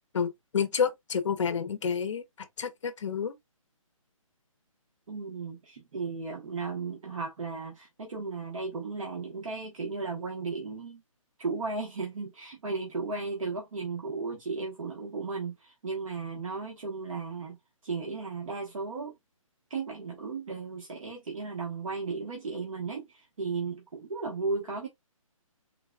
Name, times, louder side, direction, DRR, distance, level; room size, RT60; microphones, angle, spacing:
voice 1, 0.1-2.2 2.6-3.3, left 6 dB, 60° left, 0.6 m, -29 dB
voice 2, 5.1-11.0 11.4-17.6 17.8-19.1 19.7-24.9, right 4 dB, 70° right, 1.1 m, -35 dB
3.8 x 2.3 x 2.2 m
hypercardioid pair, 165°, 18 cm